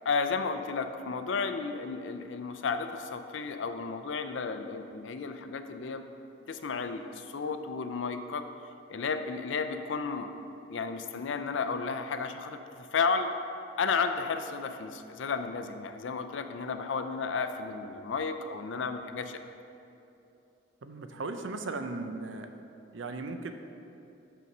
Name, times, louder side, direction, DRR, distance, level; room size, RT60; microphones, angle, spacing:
voice 1, 0.0-6.0 6.5-8.5 8.9-10.3 10.7-13.3 13.8-19.4, left 5 dB, 80° left, 8 dB, 0.5 m, -33 dB
voice 2, 20.8-22.5 22.9-23.5, right 3 dB, 85° right, 7 dB, 0.6 m, -37 dB
6.8 x 6.1 x 5.4 m, 2.8 s
head